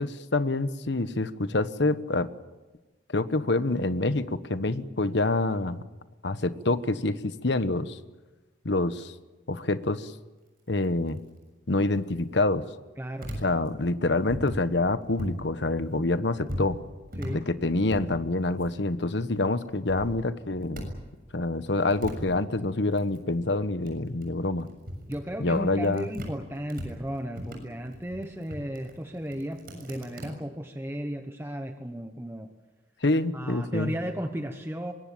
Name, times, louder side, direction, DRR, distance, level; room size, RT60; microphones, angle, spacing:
voice 1, 0.0-2.3 3.1-5.8 6.2-8.0 8.6-9.1 9.5-10.1 10.7-11.2 11.7-12.6 13.4-16.8 17.3-20.9 21.3-24.7 25.4-26.1 33.0-33.9, left 2 dB, 65° left, 12 dB, 1.2 m, -26 dB
voice 2, 13.0-13.3 17.2-17.4 25.1-32.5 33.3-34.9, equal, 15° right, 6 dB, 1.0 m, -34 dB
sound 1, 13.2-15.4 15.7-19.3 19.6-21.2 21.4-26.4 26.7-30.3, equal, 50° right, 6.9 m, -39 dB
24.5 x 21.0 x 8.7 m, 1.2 s
head